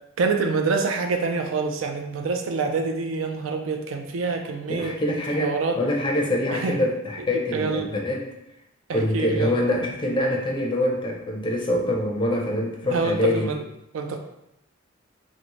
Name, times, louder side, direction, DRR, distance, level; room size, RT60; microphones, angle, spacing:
voice 1, 0.2-4.9 5.4-5.8 6.5-6.8 7.5-7.9 8.9-9.5 12.9-13.6 13.9-14.2, right 4 dB, 70° right, 5 dB, 0.4 m, -26 dB
voice 2, 4.7-8.3 8.9-13.5, left 1 dB, 25° left, -1 dB, 0.5 m, -25 dB
3.8 x 2.1 x 2.9 m, 0.85 s
head